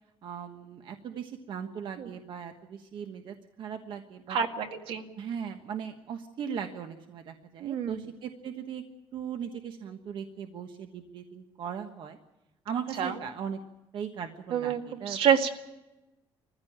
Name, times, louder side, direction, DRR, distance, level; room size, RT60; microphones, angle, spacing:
voice 1, 0.2-4.4 5.1-8.8 9.1-12.2 12.6-13.6 13.9-15.2, right 7 dB, 60° right, 6 dB, 1.3 m, -38 dB
voice 2, 4.3-5.0 7.6-8.1 13.0-13.2 14.5-15.5, right 7 dB, 85° right, 5 dB, 2.0 m, -28 dB
21.5 x 15.0 x 8.7 m, 0.99 s
cardioid pair, 140°, 9 cm